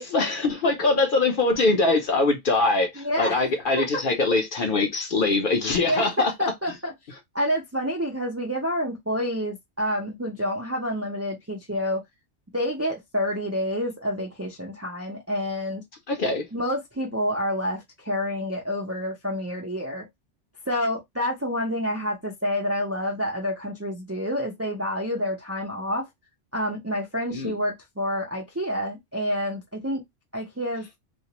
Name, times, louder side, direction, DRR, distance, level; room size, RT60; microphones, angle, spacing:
voice 1, 0.0-6.3 16.1-16.5 27.3-27.5, left 3 dB, 55° left, 0.7 m, -23 dB
voice 2, 3.0-3.4 3.8-4.0 5.8-6.9 7.3-12.0 12.5-15.8 16.5-20.0 20.7-26.0 26.5-30.0 30.3-30.8, equal, 25° right, 0.3 m, -28 dB
2.4 x 2.0 x 2.8 m
omnidirectional pair, 1.2 m